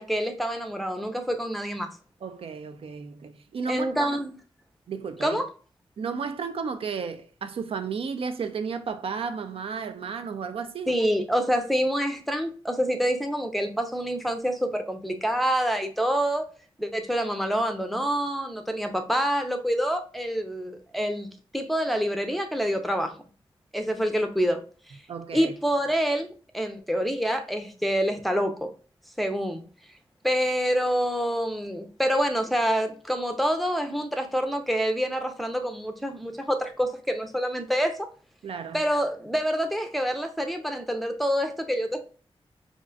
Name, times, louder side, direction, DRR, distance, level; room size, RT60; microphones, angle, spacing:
voice 1, 0.0-1.9 3.7-4.4 5.2-5.5 10.9-16.5 16.8-23.2 23.7-24.6 25.3-28.7 29.2-29.6 30.2-38.1 38.7-42.0, equal, ahead, 0.5 m, -27 dB
voice 2, 2.2-4.1 4.9-5.4 6.0-10.9 25.1-25.5 38.4-38.8, right 5 dB, 80° right, 0.4 m, -33 dB
5.1 x 2.4 x 2.4 m
wide cardioid pair, 140°, 10 cm